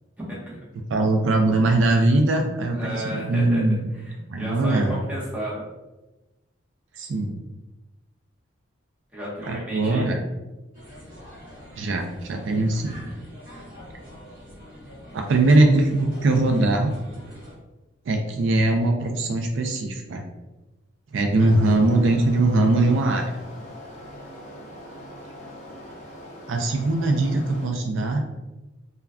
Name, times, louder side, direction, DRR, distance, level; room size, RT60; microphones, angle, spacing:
voice 1, 0.2-0.6 2.8-3.6 4.0-5.6 9.1-10.1 21.4-21.8, right 1 dB, 5° right, -7 dB, 0.8 m, -33 dB
voice 2, 0.9-3.9 4.3-5.0 6.9-7.4 9.4-10.2 11.8-13.0 15.1-16.9 18.1-20.2 21.1-23.3 26.5-28.2, right 2 dB, 70° right, 3 dB, 0.4 m, -21 dB
sound 1, 10.7-17.6, equal, 45° right, 0.9 m, -44 dB
sound 2, 21.4-27.6, left 1 dB, 35° left, 0.6 m, -42 dB
2.2 x 2.2 x 3.5 m, 1.1 s
head